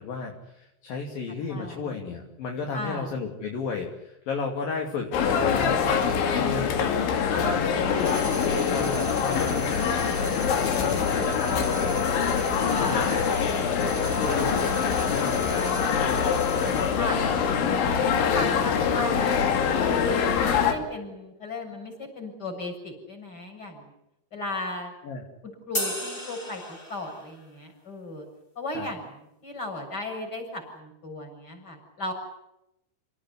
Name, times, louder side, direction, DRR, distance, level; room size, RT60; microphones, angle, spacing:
voice 1, 0.0-6.8 7.3-12.1 12.6-13.4 14.0-15.9 16.5-17.4 18.3-19.2 25.0-25.2 28.7-28.9, left 4 dB, 55° left, 2 dB, 4.2 m, -34 dB
voice 2, 1.5-2.0 2.7-3.1 7.8-8.5 11.0-11.9 12.7-13.0 17.0-17.2 18.3-19.4 19.8-23.8 24.3-24.9 25.7-28.3 28.6-29.1 29.4-32.1, left 2 dB, 20° left, 4 dB, 7.7 m, -35 dB
sound 1, 5.1-20.7, left 6 dB, 90° left, 5.1 m, -24 dB
sound 2, 8.0-17.1, right 2 dB, 5° right, 2.4 m, -40 dB
sound 3, 25.7-27.4, left 1 dB, 40° left, 0.8 m, -33 dB
29.5 x 18.5 x 9.7 m, 0.85 s
omnidirectional pair, 5.2 m